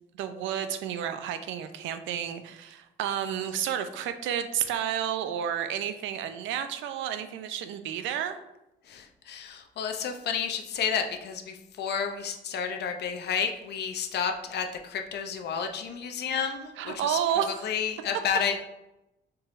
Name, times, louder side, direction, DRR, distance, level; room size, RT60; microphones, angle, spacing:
voice 1, 0.2-8.4 16.8-17.5, right 9 dB, 85° right, 9 dB, 0.4 m, -31 dB
voice 2, 8.9-17.2 17.6-18.6, left 7 dB, 60° left, 5 dB, 0.6 m, -31 dB
4.5 x 3.1 x 2.5 m, 0.89 s
cardioid pair, 100°, 19 cm